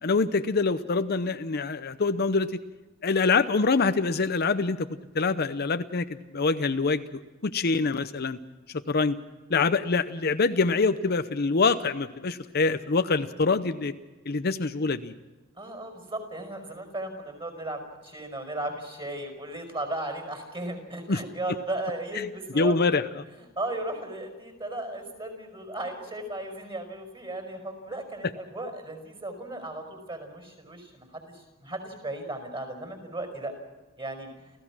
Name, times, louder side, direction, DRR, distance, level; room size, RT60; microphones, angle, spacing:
voice 1, 0.0-2.5 3.0-4.9 5.1-6.1 6.3-8.4 8.9-9.2 9.5-13.9 14.3-15.1 21.1-21.2 22.5-23.2, left 4 dB, 50° left, 10 dB, 0.7 m, -25 dB
voice 2, 15.6-23.0 23.6-33.5 34.0-34.3, right 1 dB, 25° right, 5 dB, 5.3 m, -36 dB
29.0 x 15.5 x 6.2 m, 1.2 s
head